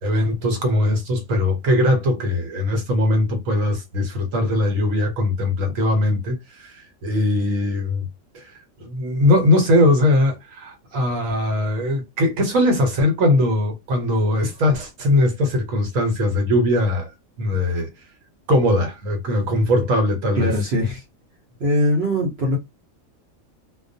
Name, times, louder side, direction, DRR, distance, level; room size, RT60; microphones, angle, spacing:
voice 1, 0.0-8.1 8.3-8.5 8.8-17.1 17.4-17.9 18.5-20.5, left 1 dB, 75° right, 1.2 m, -20 dB
voice 2, 20.4-21.0 21.6-22.6, equal, 55° right, 0.8 m, -21 dB
2.3 x 2.2 x 2.6 m
omnidirectional pair, 1.4 m